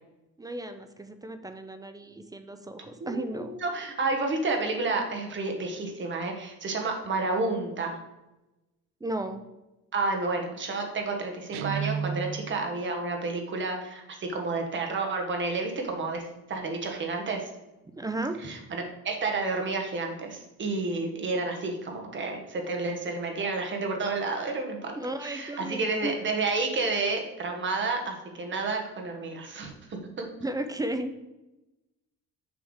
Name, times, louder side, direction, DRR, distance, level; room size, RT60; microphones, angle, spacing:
voice 1, 0.4-3.5 9.0-9.4 18.0-18.6 25.0-26.1 30.4-31.2, right 1 dB, 10° right, 8 dB, 0.3 m, -34 dB
voice 2, 3.0-8.0 9.9-16.2 16.5-17.5 18.4-24.9 25.2-30.3, right 3 dB, 35° right, 3 dB, 1.3 m, -30 dB
Guitar, 11.5-12.7, right 7 dB, 80° right, 0.5 m, -32 dB
7.1 x 3.5 x 6.3 m, 0.99 s
cardioid pair, 150°, 34 cm